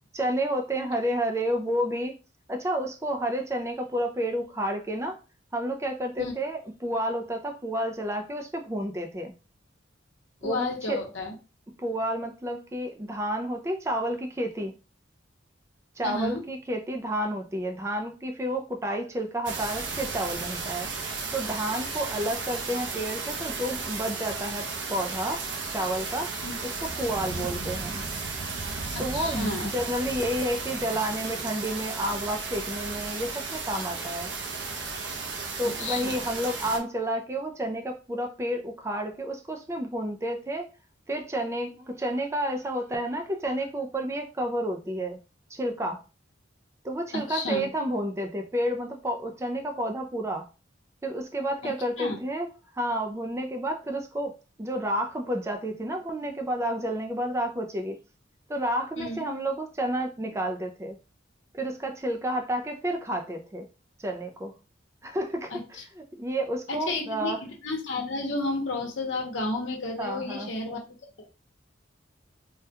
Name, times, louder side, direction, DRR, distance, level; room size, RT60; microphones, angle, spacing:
voice 1, 0.1-2.1 2.5-5.2 5.5-9.3 10.4-11.0 11.8-14.7 16.0-20.9 21.3-25.4 25.7-26.3 26.6-28.0 29.0-34.3 35.6-40.7 41.1-45.2 45.5-46.0 46.8-50.5 51.0-52.5 52.8-58.0 58.5-61.0 61.6-63.7 64.0-64.6 65.0-67.4 70.0-70.8, right 1 dB, 15° right, 0.4 m, -30 dB
voice 2, 10.4-11.3 16.0-16.4 26.4-26.6 28.9-29.7 35.8-36.3 47.1-47.7 51.6-51.7 52.0-52.2 59.0-59.3 65.5-65.8 66.7-67.3 67.6-70.8, left 2 dB, 80° left, 0.8 m, -32 dB
sound 1, 19.5-36.8, right 4 dB, 70° right, 0.7 m, -34 dB
3.4 x 2.2 x 2.8 m
head